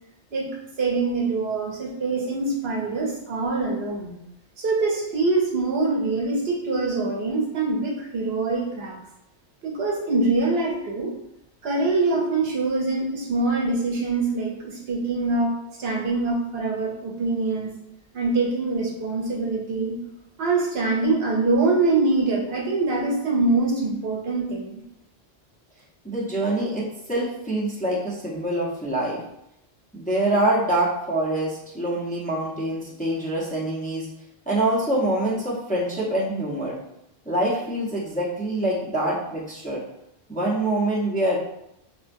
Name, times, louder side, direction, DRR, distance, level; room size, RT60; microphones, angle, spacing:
voice 1, 0.8-4.2 4.6-9.0 9.6-11.1 11.6-15.5 15.8-17.7 18.1-20.0 20.4-24.8, right 3 dB, 75° right, -2 dB, 1.0 m, -24 dB
voice 2, 26.0-26.8 27.1-29.2 29.9-34.1 34.5-36.8 37.3-39.8 40.3-41.4, right 1 dB, 10° left, -6 dB, 0.6 m, -25 dB
4.4 x 2.1 x 2.5 m, 0.81 s
omnidirectional pair, 1.1 m